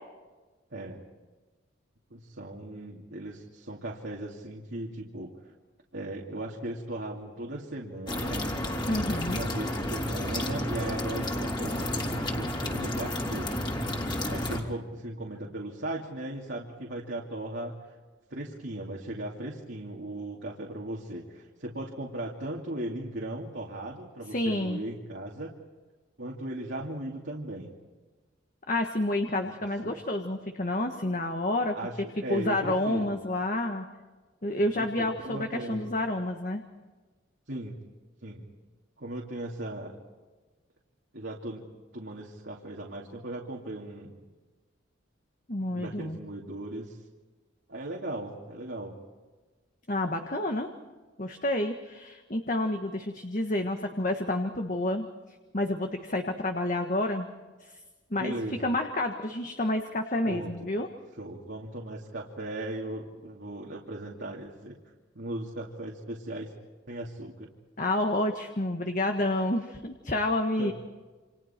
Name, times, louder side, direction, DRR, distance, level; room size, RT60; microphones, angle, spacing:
voice 1, 0.7-1.0 2.1-5.3 5.9-8.5 9.3-13.6 14.3-18.0 18.3-25.5 26.2-27.7 29.8-30.0 31.7-33.2 34.7-35.9 37.5-37.8 38.2-38.4 39.0-40.0 41.1-41.6 41.9-44.2 45.7-47.0 47.7-49.0 58.2-58.8 60.2-60.7 61.2-64.8 65.1-66.5 66.9-67.5 70.6-70.7, right 1 dB, 65° right, -3 dB, 2.7 m, -37 dB
sound 1, 8.1-14.6, left 1 dB, 25° left, 3.2 m, -31 dB
voice 2, 8.9-9.4 24.3-24.8 28.7-31.7 32.3-33.9 34.4-36.6 45.5-46.2 49.9-50.7 51.2-55.1 55.5-57.3 57.6-57.7 58.1-60.9 67.8-70.7, left 1 dB, 40° left, 4 dB, 1.5 m, -29 dB
29.0 x 27.0 x 4.5 m, 1.3 s
head